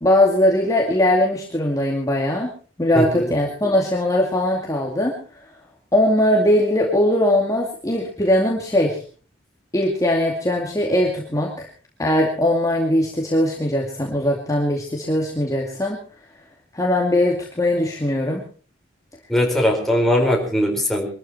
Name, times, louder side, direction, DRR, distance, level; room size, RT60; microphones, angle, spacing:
voice 1, 0.0-2.5 2.8-5.1 5.9-9.0 9.7-11.7 12.0-16.0 16.7-18.4, left 1 dB, 20° left, -1 dB, 2.4 m, -20 dB
voice 2, 2.9-3.3 19.3-21.1, left 1 dB, ahead, 0 dB, 4.4 m, -20 dB
23.0 x 13.5 x 4.3 m, 0.40 s
head